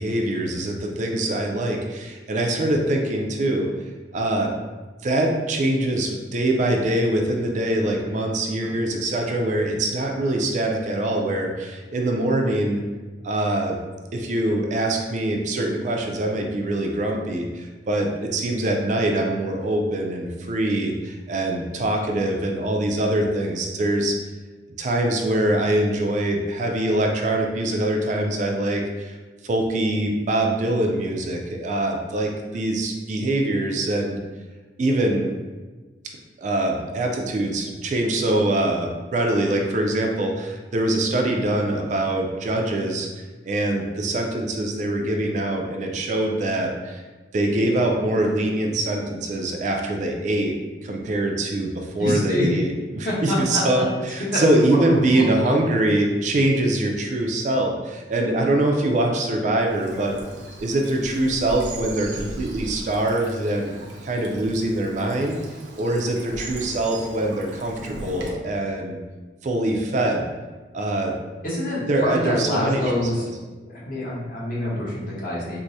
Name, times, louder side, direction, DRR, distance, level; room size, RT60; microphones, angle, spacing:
voice 1, 0.0-3.7 4.1-4.5 5.0-12.8 13.2-13.8 14.1-24.2 24.8-29.1 29.4-34.2 34.8-35.3 36.4-43.1 43.5-47.0 47.3-50.5 50.8-60.2 60.6-63.7 64.0-65.4 65.8-69.0 69.4-70.3 70.7-71.1 71.9-72.8 73.2-73.3, right 1 dB, 40° right, 2 dB, 0.3 m, -23 dB
voice 2, 52.0-52.5 53.0-54.4 54.8-55.5 71.4-73.3 73.7-75.6, left 1 dB, 50° left, -6 dB, 0.9 m, -26 dB
Bird vocalization bird call bird song / Stream, 59.7-68.3, right 2 dB, 85° right, 0.6 m, -39 dB
4.5 x 2.0 x 2.6 m, 1.3 s
head